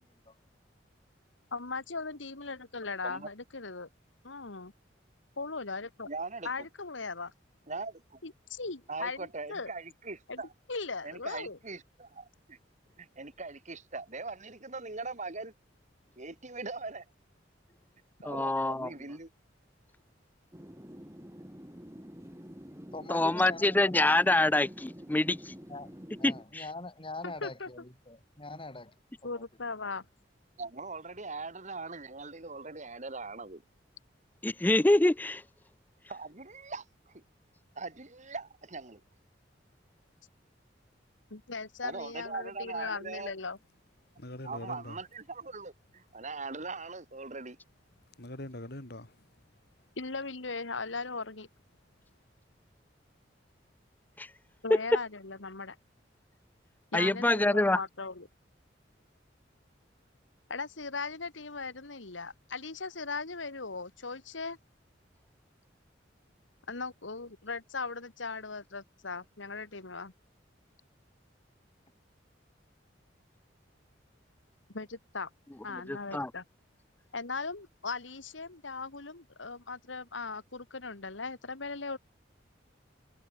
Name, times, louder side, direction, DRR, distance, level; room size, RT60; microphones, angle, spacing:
voice 1, 1.5-3.9 4.2-4.7 5.4-6.1 6.4-7.3 8.2-9.7 10.3-10.4 10.7-11.6 27.2-27.7 29.2-30.0 41.3-43.6 50.0-51.5 54.6-55.8 56.9-58.3 60.5-64.6 66.7-70.1 74.7-75.3 75.6-76.4 77.1-82.0, left 4 dB, 85° left, 2.1 m, -38 dB
voice 2, 6.0-6.7 7.7-8.2 8.9-10.5 11.0-12.6 13.0-15.5 16.2-17.0 18.2-19.3 30.6-33.6 36.1-37.2 37.7-39.0 41.8-43.3 44.4-47.6, right 3 dB, 40° right, 2.8 m, -41 dB
voice 3, 18.2-18.9 23.1-25.5 26.2-26.6 34.4-35.4 54.2-54.3 54.7-54.8 56.9-57.8 75.7-76.3, left 2 dB, 10° left, 0.4 m, -26 dB
sound 1, 20.5-26.4, equal, 15° right, 4.3 m, -48 dB
voice 4, 22.9-24.0 25.7-28.9 29.2-29.4, left 2 dB, 30° left, 4.0 m, -43 dB
voice 5, 44.2-45.0 48.2-49.3, left 1 dB, 60° left, 3.0 m, -43 dB
head